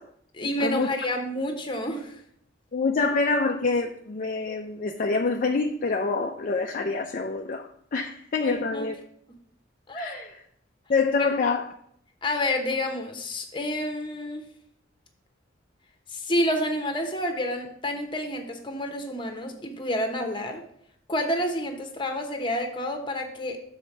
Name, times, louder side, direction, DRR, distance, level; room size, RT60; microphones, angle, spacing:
voice 1, 0.3-2.2 8.4-8.9 9.9-10.3 11.2-11.3 12.2-14.5 16.1-20.6 21.1-23.6, left 1 dB, 25° left, 1.0 m, -29 dB
voice 2, 2.7-8.9 9.9-10.4 10.9-11.7, left 4 dB, 40° left, 0.4 m, -26 dB
7.0 x 4.3 x 5.9 m
head